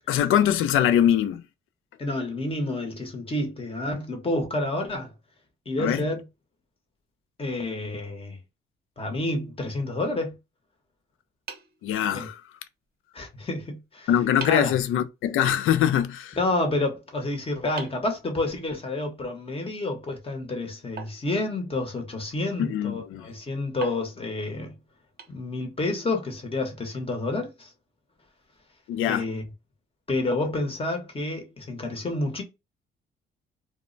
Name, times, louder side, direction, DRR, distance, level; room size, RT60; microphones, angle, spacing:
voice 1, 0.1-1.4 5.8-6.0 11.8-12.4 14.1-16.4 22.6-23.2 28.9-29.2, left 10 dB, 80° left, 0.4 m, -23 dB
voice 2, 2.0-5.1 5.7-6.2 7.4-8.4 9.0-10.4 12.1-12.3 13.1-14.1 14.4-14.7 16.4-24.7 25.3-27.7 29.1-29.4 30.1-32.4, left 2 dB, 25° left, 0.9 m, -29 dB
sound 1, 11.5-12.6 13.8-13.9 14.4-14.8 17.8-19.0 21.0-22.1 23.8-25.9, right 6 dB, 45° right, 0.6 m, -44 dB
2.1 x 2.1 x 3.8 m
cardioid pair, 105°, 21 cm